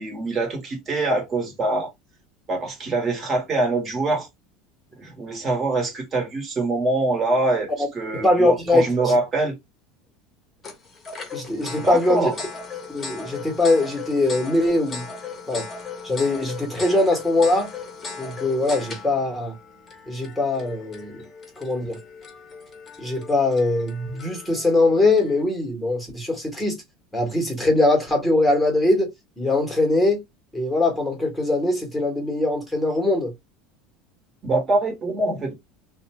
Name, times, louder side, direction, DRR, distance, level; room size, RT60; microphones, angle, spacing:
voice 1, 0.0-1.9 2.5-4.3 5.0-7.7 7.9-9.5 11.8-12.3 34.4-35.5, right 2 dB, 25° right, 1.2 m, -24 dB
voice 2, 8.1-9.2 11.3-12.3 12.9-15.0 15.5-15.7 16.0-17.7 18.2-19.6 20.1-21.2 21.6-22.0 23.0-26.8 27.1-29.1 29.4-30.2 30.5-33.3, left 2 dB, ahead, 1.1 m, -21 dB
sound 1, 10.6-25.4, left 4 dB, 20° left, 0.8 m, -38 dB
2.6 x 2.2 x 2.8 m
supercardioid pair, 150°, 0 cm